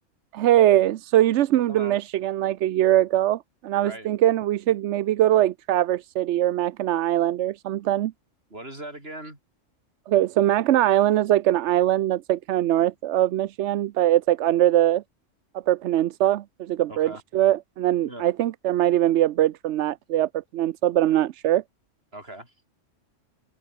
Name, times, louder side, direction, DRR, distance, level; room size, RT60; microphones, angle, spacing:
voice 1, 0.3-8.1 10.1-15.0 15.7-21.6, right 13 dB, 70° right, 0.9 m, -22 dB
voice 2, 8.5-9.4 16.9-17.2 18.0-18.2 22.1-22.5, right 1 dB, 50° right, 6.6 m, -39 dB
open air
omnidirectional pair, 1.3 m